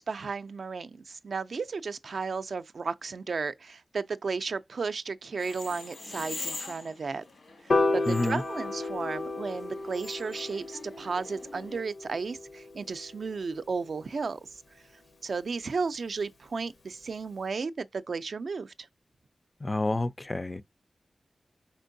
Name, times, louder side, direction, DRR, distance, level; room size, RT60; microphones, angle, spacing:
voice 1, 0.0-7.2 7.6-14.6 15.2-18.7, right 4 dB, 75° right, 0.3 m, -34 dB
sound 1, 5.3-11.8, left 3 dB, 90° left, 2.0 m, -44 dB
Piano, 7.7-14.0, left 2 dB, 70° left, 0.7 m, -33 dB
voice 2, 8.1-8.4 19.6-20.6, left 2 dB, 30° left, 0.3 m, -29 dB
4.4 x 4.3 x 2.6 m
wide cardioid pair, 95°, 0 cm